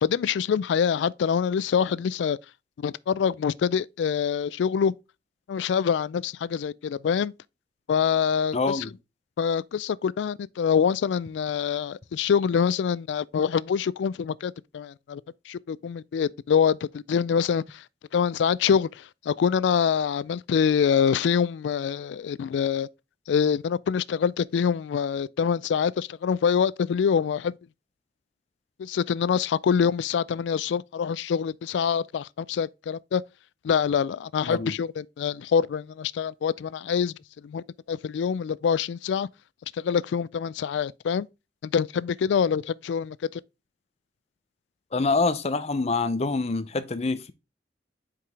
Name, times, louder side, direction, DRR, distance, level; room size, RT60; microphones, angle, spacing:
voice 1, 0.0-2.4 2.8-4.9 5.5-7.3 7.9-8.8 9.4-15.2 15.5-17.8 18.1-22.9 23.3-27.6 28.8-33.2 33.6-37.1 37.4-39.3 39.7-41.3 41.6-43.4, left 7 dB, 85° left, 0.3 m, -25 dB
voice 2, 8.5-8.9 34.5-34.8 44.9-47.3, left 3 dB, 35° left, 0.6 m, -26 dB
5.8 x 4.9 x 3.3 m
head